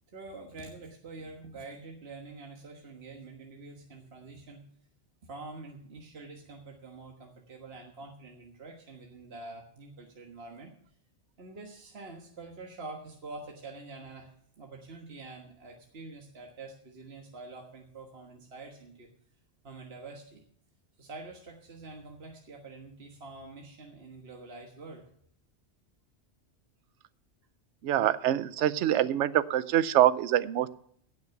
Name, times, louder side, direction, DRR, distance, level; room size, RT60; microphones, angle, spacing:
voice 1, 0.1-4.6 5.3-10.7 11.4-19.1 19.6-20.4 21.0-25.1, right 3 dB, 60° right, 1 dB, 1.7 m, -46 dB
voice 2, 27.8-30.7, right 12 dB, 80° right, 16 dB, 0.9 m, -25 dB
16.5 x 6.4 x 5.8 m, 0.65 s
omnidirectional pair, 1.2 m